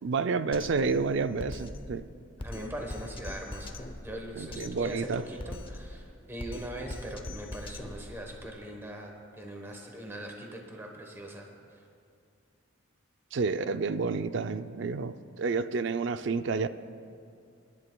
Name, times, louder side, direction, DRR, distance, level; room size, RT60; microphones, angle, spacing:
voice 1, 0.0-2.0 4.4-5.2 13.3-16.7, right 4 dB, 60° right, 11 dB, 0.4 m, -30 dB
Drum kit, 0.5-8.5, left 1 dB, 25° left, 0.5 m, -42 dB
voice 2, 2.4-11.5, right 1 dB, 10° right, 1 dB, 1.1 m, -41 dB
28.5 x 11.0 x 2.3 m, 2.3 s
head